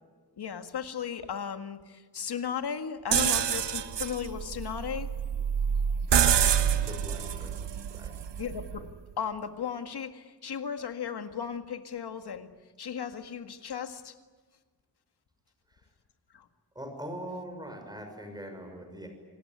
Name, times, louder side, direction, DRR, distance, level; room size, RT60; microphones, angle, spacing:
voice 1, 0.4-5.1 8.4-8.9 9.2-12.5 12.8-14.1 16.3-16.5, left 7 dB, 70° left, 8 dB, 1.9 m, -36 dB
sound 1, 3.1-8.9, right 8 dB, 90° right, 1.3 m, -27 dB
voice 2, 6.2-7.6 7.9-8.2 15.7-15.9 16.7-19.1, equal, 10° right, 4 dB, 6.1 m, -42 dB
27.5 x 19.0 x 9.6 m, 1.4 s
wide cardioid pair, 165°, 41 cm